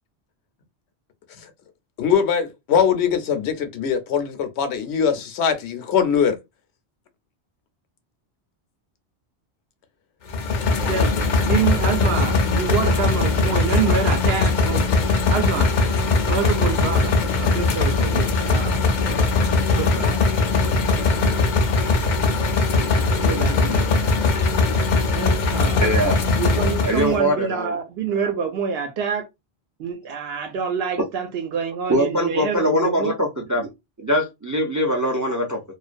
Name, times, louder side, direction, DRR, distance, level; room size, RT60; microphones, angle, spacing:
voice 1, 2.0-6.4, left 7 dB, 75° left, 0.9 m, -21 dB
sound 1, 10.3-27.2, left 3 dB, 55° left, 0.5 m, -20 dB
voice 2, 10.8-14.8 15.3-15.8 16.3-18.8 19.7-20.2 21.2-21.4 23.2-24.4 25.1-25.9 26.3-29.3 29.8-33.1, right 6 dB, 70° right, 0.8 m, -27 dB
voice 3, 25.8-26.2 26.8-27.8 31.0-31.1 31.9-33.7 34.0-35.6, equal, 30° right, 0.3 m, -22 dB
2.4 x 2.1 x 2.4 m
omnidirectional pair, 1.1 m